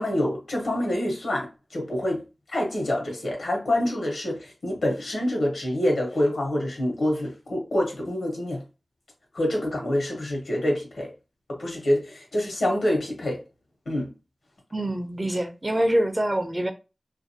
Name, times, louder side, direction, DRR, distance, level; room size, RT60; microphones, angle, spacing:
voice 1, 0.0-2.2 2.5-8.6 9.3-11.1 11.5-13.4 13.9-14.1, left 1 dB, 85° left, 1.0 m, -26 dB
voice 2, 14.7-16.7, right 1 dB, 30° right, 0.5 m, -25 dB
2.7 x 2.5 x 2.7 m
cardioid pair, 50°, 0 cm